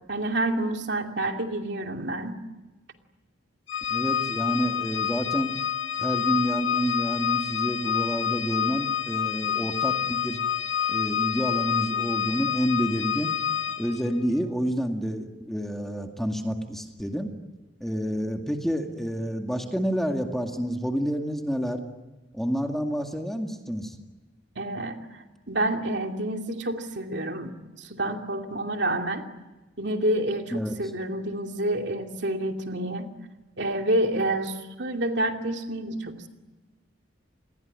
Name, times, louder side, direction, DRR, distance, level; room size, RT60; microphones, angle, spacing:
voice 1, 0.1-2.4 24.6-29.3 29.8-33.1 33.6-36.3, right 1 dB, 60° right, 4 dB, 2.7 m, -28 dB
Organ, 3.7-14.1, left 9 dB, 80° left, 1.7 m, -28 dB
voice 2, 3.9-5.5 6.0-10.4 10.9-13.3 13.8-17.3 17.8-21.8 22.3-24.0 30.5-30.8, equal, ahead, 3 dB, 2.1 m, -29 dB
28.5 x 21.0 x 9.7 m, 1.1 s
head